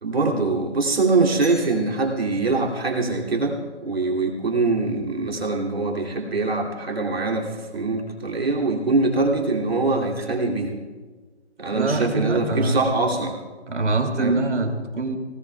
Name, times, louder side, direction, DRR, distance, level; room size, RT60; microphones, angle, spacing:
voice 1, 0.0-10.7 11.6-13.4 14.2-14.4, right 3 dB, 60° right, 0 dB, 2.7 m, -23 dB
sound 1, 1.4-4.3, left 1 dB, 10° left, 2.5 m, -46 dB
voice 2, 11.7-12.8 13.7-15.2, right 2 dB, 90° right, 4 dB, 2.5 m, -24 dB
24.0 x 18.0 x 2.3 m, 1.4 s
hypercardioid pair, 180°, 34 cm